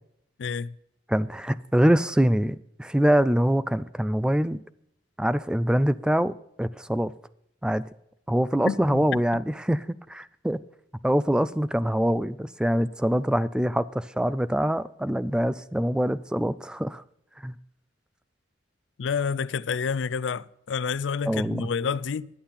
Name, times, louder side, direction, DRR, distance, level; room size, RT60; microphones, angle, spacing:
voice 1, 0.4-0.7 8.6-9.0 19.0-22.3, left 6 dB, 75° left, 0.4 m, -29 dB
voice 2, 1.1-4.6 5.2-7.1 7.6-7.8 8.3-10.6 11.0-17.0 17.4-17.6 21.3-21.7, equal, 5° right, 0.3 m, -24 dB
11.5 x 8.7 x 5.6 m
head